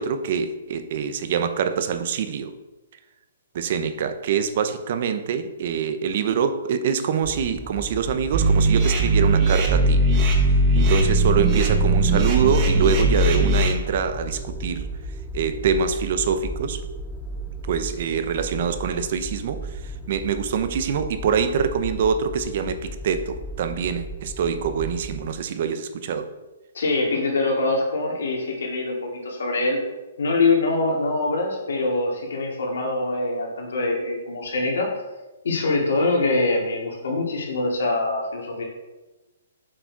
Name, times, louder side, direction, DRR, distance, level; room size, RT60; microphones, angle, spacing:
voice 1, 0.0-2.5 3.5-10.0 10.8-14.9 15.3-16.8 17.7-26.3, right 7 dB, 50° right, 9 dB, 0.7 m, -25 dB
sound 1, 7.2-25.3, right 1 dB, ahead, 0.5 m, -35 dB
sound 2, 8.3-13.7, right 2 dB, 30° right, 1.2 m, -19 dB
voice 2, 26.7-29.8 30.2-34.9 35.4-38.6, left 2 dB, 80° left, -1 dB, 2.4 m, -24 dB
7.4 x 4.8 x 4.7 m, 1.1 s
hypercardioid pair, 160°, 0 cm